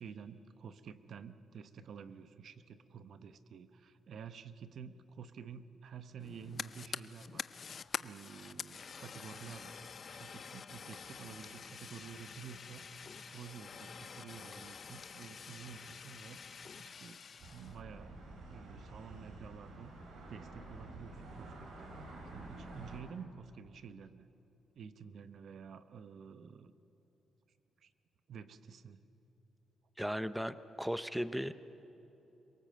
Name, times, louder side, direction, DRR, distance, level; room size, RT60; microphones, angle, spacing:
voice 1, 0.0-9.8 10.1-12.8 13.3-17.2 17.5-19.9 20.3-24.3 24.7-26.7 27.8-27.9 28.3-29.0, right 7 dB, 65° right, 12 dB, 0.9 m, -50 dB
Fire, 6.2-17.8, left 6 dB, 50° left, 0.5 m, -47 dB
sound 1, 17.4-23.0, right 2 dB, 85° right, 4.4 m, -49 dB
voice 2, 30.0-31.5, equal, 5° right, 13 dB, 0.7 m, -36 dB
26.5 x 18.0 x 7.8 m, 3.0 s
cardioid pair, 90°, 0 cm